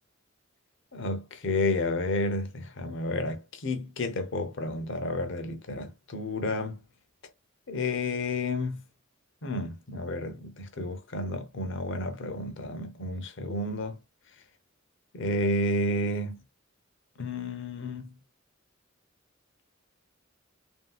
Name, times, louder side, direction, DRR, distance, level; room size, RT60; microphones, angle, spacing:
voice 1, 0.9-6.8 7.7-8.8 9.4-14.0 15.1-16.4 17.2-18.1, left 2 dB, 65° left, 0.7 m, -31 dB
3.1 x 2.7 x 2.3 m
head